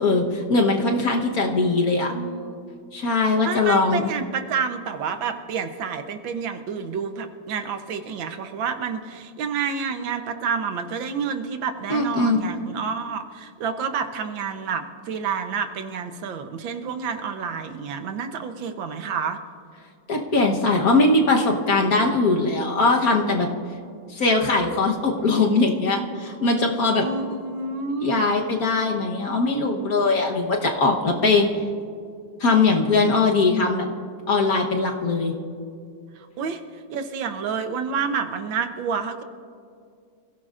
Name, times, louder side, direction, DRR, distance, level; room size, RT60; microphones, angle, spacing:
voice 1, 0.0-2.1 2.9-4.1 11.9-12.5 20.1-23.5 24.1-27.0 28.0-31.5 32.4-33.8 34.3-35.3, left 3 dB, 50° left, 1 dB, 1.5 m, -21 dB
voice 2, 2.1-2.6 3.4-19.4 27.0-28.3 36.2-39.2, right 6 dB, 75° right, 7 dB, 1.6 m, -29 dB
27.0 x 16.0 x 2.5 m, 2.3 s
omnidirectional pair, 2.1 m